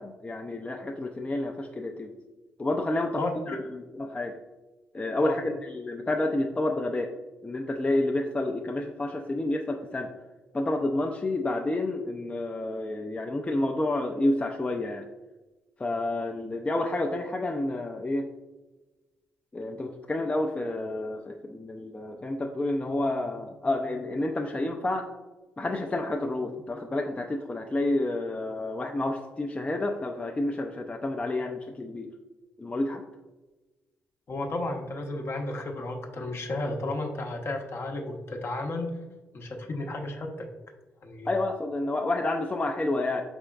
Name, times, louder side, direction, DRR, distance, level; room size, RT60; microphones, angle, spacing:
voice 1, 0.0-2.1 2.6-4.3 4.9-7.1 7.4-10.1 10.5-15.1 15.8-18.3 19.5-25.1 25.6-32.1 32.6-33.0 41.3-43.2, left 2 dB, 25° left, 2 dB, 0.5 m, -29 dB
voice 2, 34.3-38.9 39.3-40.5 41.0-41.3, left 2 dB, 50° left, 3 dB, 0.8 m, -33 dB
5.0 x 3.5 x 2.3 m, 1.1 s
hypercardioid pair, 40°, 5 cm